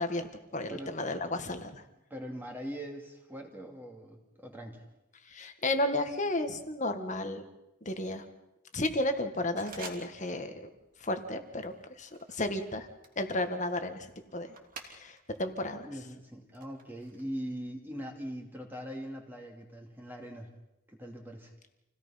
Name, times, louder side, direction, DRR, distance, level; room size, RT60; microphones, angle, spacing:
voice 1, 0.0-1.8 5.3-7.4 7.8-8.2 8.7-10.7 11.0-12.9 13.1-14.5 14.8-15.9, left 1 dB, 35° left, 7 dB, 1.8 m, -33 dB
voice 2, 2.1-4.8 15.8-20.5 20.9-21.5, equal, 10° right, 1 dB, 2.6 m, -41 dB
sound 1, 9.6-10.5 10.7-11.1 11.6-15.4 15.7-17.2, right 4 dB, 40° right, 3.0 m, -50 dB
28.5 x 17.5 x 5.8 m, 0.91 s
head